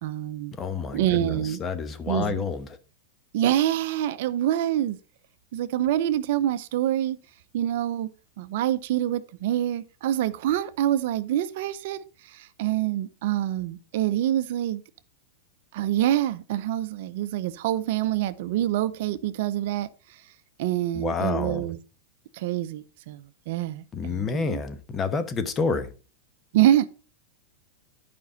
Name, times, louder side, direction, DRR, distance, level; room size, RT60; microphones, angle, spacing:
voice 1, 0.0-0.5 0.9-1.6 2.1-2.4 3.3-5.0 5.5-7.2 7.5-8.1 8.4-14.8 15.7-19.9 20.6-21.8 22.3-24.6 26.5-26.9, right 12 dB, 65° right, 0.6 m, -26 dB
voice 2, 0.6-2.7 20.9-21.7 23.9-25.9, left 5 dB, 25° left, 1.0 m, -29 dB
11.0 x 5.3 x 3.9 m
supercardioid pair, 130°, 0 cm